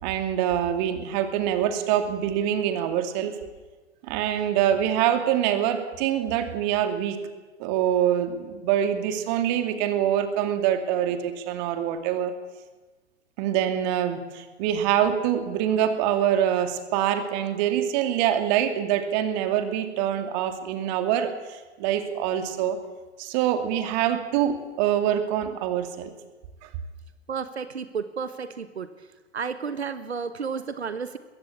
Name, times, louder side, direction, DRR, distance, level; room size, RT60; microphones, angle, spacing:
voice 1, 0.0-3.3 4.0-7.2 7.6-12.3 13.4-22.8 23.2-26.1, right 10 dB, 40° right, 8 dB, 2.6 m, -25 dB
voice 2, 27.3-28.9 29.3-31.2, right 6 dB, 70° right, 12 dB, 1.3 m, -32 dB
22.0 x 15.5 x 8.6 m, 1.3 s
figure-of-eight pair, 100°, 33 cm